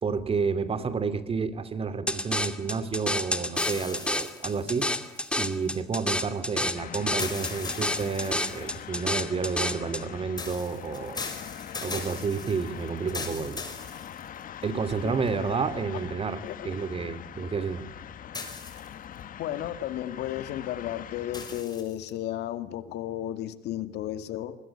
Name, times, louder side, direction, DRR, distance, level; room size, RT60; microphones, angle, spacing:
voice 1, 0.0-4.9 5.4-11.2 11.8-13.6 14.6-17.9, right 5 dB, 35° right, 12 dB, 2.7 m, -30 dB
sound 1, 2.1-10.0, left 1 dB, 5° left, 2.4 m, -30 dB
sound 2, 3.5-5.7 7.2-8.8 10.4-14.6 15.3-15.4 18.3-19.2 21.3-22.1, left 4 dB, 25° left, 6.4 m, -39 dB
sound 3, 6.7-21.6, left 9 dB, 55° left, 1.8 m, -42 dB
voice 2, 19.4-24.6, left 12 dB, 80° left, 10 dB, 2.2 m, -33 dB
25.0 x 21.5 x 9.9 m, 0.85 s
cardioid pair, 110°, 17 cm